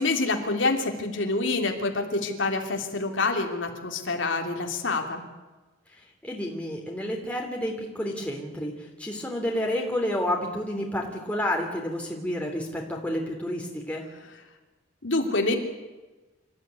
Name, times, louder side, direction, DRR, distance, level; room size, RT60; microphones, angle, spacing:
voice 1, 0.0-5.3 15.0-15.6, left 3 dB, 70° left, 3 dB, 3.1 m, -27 dB
voice 2, 6.2-14.0, left 1 dB, 5° left, -1 dB, 3.1 m, -30 dB
27.0 x 14.5 x 9.5 m, 1.2 s
head